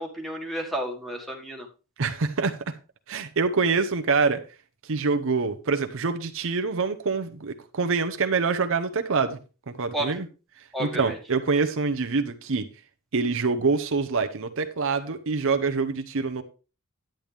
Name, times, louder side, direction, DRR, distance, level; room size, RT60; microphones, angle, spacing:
voice 1, 0.0-1.7 9.9-10.1 10.7-11.2, right 1 dB, ahead, 1.7 m, -31 dB
voice 2, 2.0-2.6 3.1-4.4 4.8-9.4 9.7-10.3 10.8-12.7 13.1-16.4, right 4 dB, 65° right, 0.8 m, -25 dB
10.5 x 8.9 x 3.4 m
head